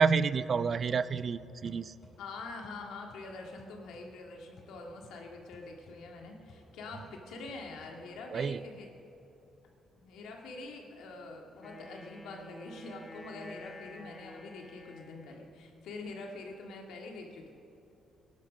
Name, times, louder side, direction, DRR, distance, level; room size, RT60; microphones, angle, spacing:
voice 1, 0.0-1.9 8.3-8.6, right 5 dB, 45° right, 16 dB, 0.4 m, -28 dB
sound 1, 0.7-8.4, left 2 dB, 50° left, 4.6 m, -60 dB
voice 2, 2.2-8.9 10.0-17.5, left 3 dB, 85° left, 1 dB, 1.9 m, -45 dB
Wind instrument woodwind instrument, 11.6-15.6, left 1 dB, 25° left, 1.9 m, -50 dB
18.0 x 10.5 x 6.2 m, 2.8 s
cardioid pair, 90°, 0 cm